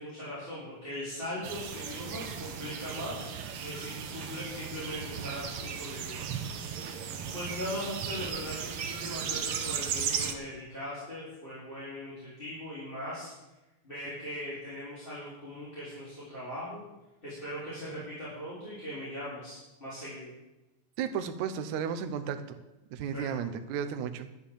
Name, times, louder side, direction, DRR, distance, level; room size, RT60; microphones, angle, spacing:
voice 1, 0.0-3.2 3.6-6.3 6.8-7.0 7.3-13.3 13.8-16.8 17.2-20.3 23.1-23.3, equal, 15° left, -10 dB, 4.6 m, -40 dB
sound 1, 1.4-10.3, right 7 dB, 60° right, 1.6 m, -36 dB
voice 2, 21.0-22.6 22.9-24.3, right 7 dB, 75° right, 7 dB, 2.2 m, -33 dB
11.5 x 11.0 x 7.2 m, 1.0 s
omnidirectional pair, 3.5 m